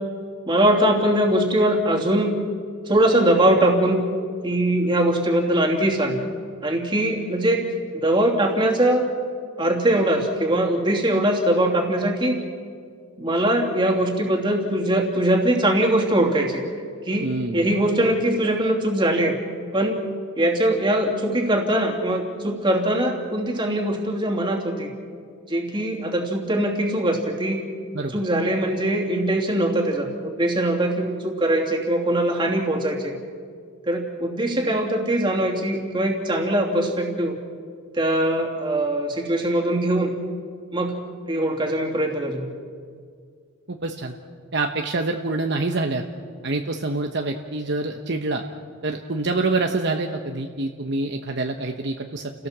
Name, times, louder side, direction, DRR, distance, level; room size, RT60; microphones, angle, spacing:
voice 1, 0.5-2.3 2.9-4.1 4.4-6.2 6.6-7.6 7.9-9.1 9.6-12.3 13.2-16.6 17.0-19.4 19.7-20.0 20.4-24.9 25.5-27.7 28.1-33.1 33.9-37.4 37.9-40.1 40.7-41.0 41.3-42.5, right 1 dB, 20° right, 0 dB, 2.9 m, -21 dB
voice 2, 17.2-17.7 27.9-28.1 43.7-44.1 44.5-46.0 46.4-48.4 48.8-52.5, right 2 dB, 50° right, 4 dB, 1.1 m, -26 dB
30.0 x 17.0 x 7.4 m, 2.1 s
head